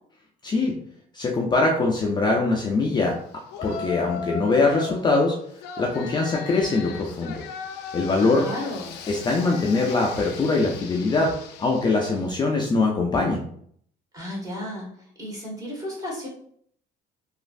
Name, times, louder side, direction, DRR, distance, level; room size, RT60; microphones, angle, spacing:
voice 1, 0.4-0.7 1.1-3.2 3.6-5.4 5.8-7.4 7.9-8.5 9.1-11.3 11.6-13.4, left 3 dB, 25° left, 0 dB, 0.4 m, -22 dB
Yell, 3.5-5.1 5.6-12.3, left 6 dB, 85° left, 0.4 m, -37 dB
voice 2, 8.1-8.9 14.1-14.9 15.2-16.3, left 1 dB, 20° right, -3 dB, 1.3 m, -33 dB
3.0 x 2.4 x 2.5 m, 0.65 s
cardioid pair, 110°, 17 cm